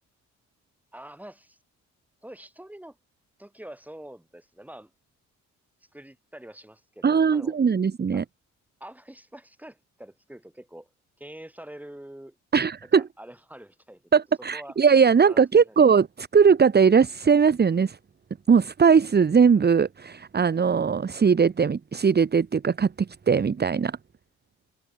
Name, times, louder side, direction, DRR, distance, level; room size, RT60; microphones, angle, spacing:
voice 1, 0.9-1.6 2.2-3.0 3.4-4.9 5.9-7.6 8.1-8.2 8.8-10.9 11.2-12.4 12.8-14.8 15.2-15.8, right 1 dB, 5° right, 6.3 m, -45 dB
voice 2, 7.0-8.2 12.5-13.0 14.1-18.0 18.5-24.0, right 6 dB, 35° right, 1.5 m, -20 dB
cardioid pair, 90°, 30 cm